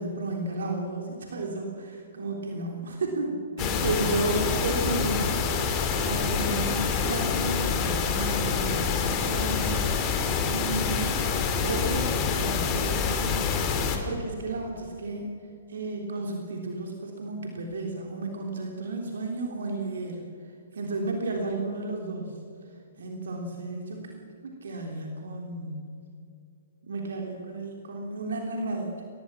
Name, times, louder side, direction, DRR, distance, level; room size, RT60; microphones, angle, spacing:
voice 1, 0.0-5.4 6.0-10.1 10.5-11.2 11.6-13.5 14.0-15.2 15.7-20.3 20.7-22.4 23.0-24.2 24.4-25.9 26.8-29.0, right 2 dB, 65° right, 1 dB, 3.5 m, -33 dB
sound 1, 3.6-14.0, left 6 dB, 30° left, 2.8 m, -26 dB
23.5 x 19.0 x 6.0 m, 2.5 s
figure-of-eight pair, 120°, 0 cm